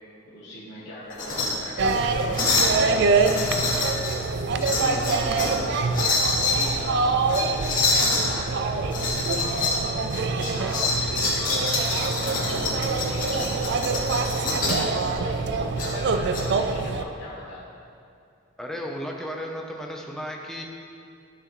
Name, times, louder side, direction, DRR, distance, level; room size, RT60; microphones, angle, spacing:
voice 1, 0.2-6.0 6.3-10.1 10.4-13.4 13.7-14.2 14.6-17.6, left 1 dB, 65° left, -8 dB, 1.2 m, -39 dB
sound 1, 1.1-1.5 1.8-2.0 2.3-2.8 3.2-4.2 4.6-5.6 5.9-6.7 7.3-8.2 8.9-9.8 10.1-14.9 15.8-16.4, left 3 dB, 40° left, 1.8 m, -26 dB
sound 2, 1.8-17.0, right 4 dB, 55° right, 0.4 m, -25 dB
voice 2, 4.7-5.4 10.4-11.1 18.6-20.6, equal, ahead, -1 dB, 0.6 m, -35 dB
11.5 x 6.1 x 3.1 m, 2.5 s
head